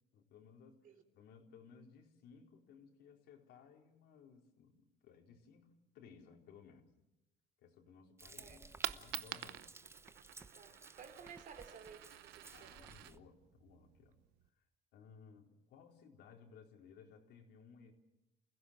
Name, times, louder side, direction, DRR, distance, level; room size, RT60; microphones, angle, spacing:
voice 1, 0.1-6.9 7.6-9.7 12.5-14.1 14.6-14.7 14.9-17.9, left 6 dB, 80° left, 4.2 m, -60 dB
Frying (food), 8.2-13.2, right 3 dB, 15° right, 0.8 m, -57 dB
Coin (dropping), 8.5-14.5, right 15 dB, 85° right, 0.9 m, -48 dB
voice 2, 10.5-12.8, right 6 dB, 50° right, 3.3 m, -55 dB
29.5 x 16.5 x 7.5 m
cardioid pair, 110°, 17 cm